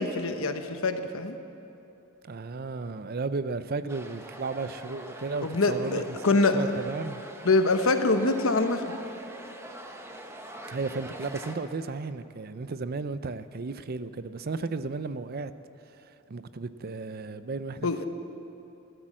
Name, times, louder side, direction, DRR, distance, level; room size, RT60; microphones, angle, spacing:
voice 1, 0.0-1.4 5.4-6.7 7.4-8.8 17.8-18.1, left 3 dB, 85° left, 8 dB, 1.1 m, -24 dB
voice 2, 2.3-6.0 6.3-7.2 10.7-15.5 16.3-18.1, right 3 dB, 50° right, 13 dB, 0.5 m, -34 dB
sound 1, 3.9-11.6, right 1 dB, 15° right, 1.0 m, -44 dB
15.0 x 13.0 x 7.6 m, 3.0 s
head